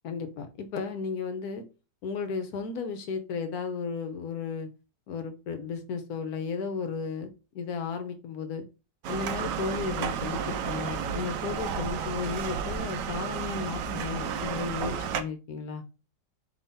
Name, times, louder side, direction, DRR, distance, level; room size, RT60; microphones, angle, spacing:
voice 1, 0.0-1.6 2.0-4.7 5.1-8.6 9.1-15.8, left 5 dB, 65° left, 8 dB, 1.1 m, -34 dB
sound 1, 9.0-15.2, right 7 dB, 80° right, 1.2 m, -32 dB
3.6 x 3.5 x 4.0 m, 0.31 s
omnidirectional pair, 1.9 m